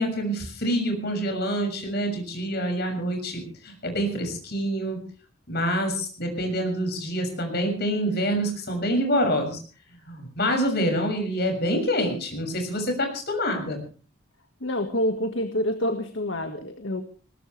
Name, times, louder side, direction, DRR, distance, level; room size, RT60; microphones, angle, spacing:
voice 1, 0.0-5.0 5.5-9.6 9.9-13.8, equal, 55° left, 4 dB, 6.6 m, -26 dB
voice 2, 14.6-17.0, left 1 dB, 70° left, 6 dB, 1.7 m, -27 dB
20.5 x 20.0 x 3.3 m, 0.39 s
head